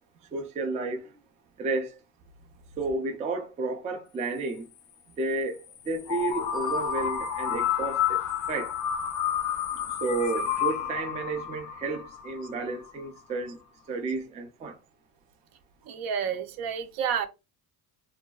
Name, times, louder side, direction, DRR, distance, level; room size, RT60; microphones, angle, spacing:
voice 1, 0.3-1.0 1.6-1.9 2.8-4.6 5.2-5.6 5.9-8.2 8.5-8.7 10.0-13.6 13.9-14.8, right 3 dB, 20° right, 0.3 m, -31 dB
sound 1, 6.1-12.9, left 9 dB, 50° left, 0.4 m, -30 dB
voice 2, 15.9-17.3, right 7 dB, 65° right, 0.6 m, -30 dB
2.6 x 2.3 x 2.3 m
cardioid pair, 145°, 38 cm